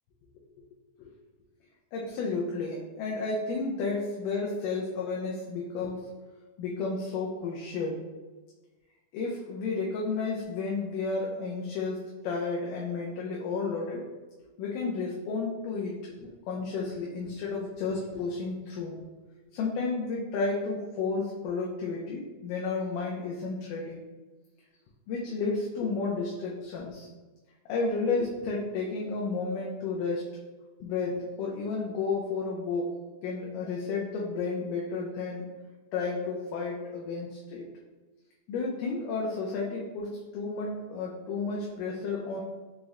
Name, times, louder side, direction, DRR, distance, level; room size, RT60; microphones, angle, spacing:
voice 1, 1.9-6.1 6.6-8.0 9.1-14.1 14.6-19.0 19.5-24.0 25.1-27.1 27.7-30.3 30.8-32.9 33.2-35.5 35.9-37.7 38.5-42.4, left 4 dB, 90° left, -3 dB, 2.2 m, -32 dB
5.8 x 2.0 x 3.5 m, 1.2 s
omnidirectional pair, 3.6 m